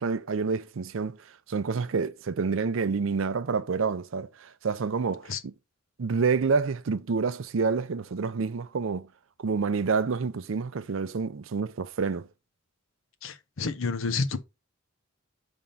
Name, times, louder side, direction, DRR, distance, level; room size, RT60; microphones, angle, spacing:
voice 1, 0.0-5.5 6.0-9.1 9.4-12.3, right 5 dB, 70° right, 0.5 m, -28 dB
voice 2, 13.2-14.4, left 4 dB, 75° left, 0.8 m, -29 dB
5.2 x 3.6 x 5.6 m
head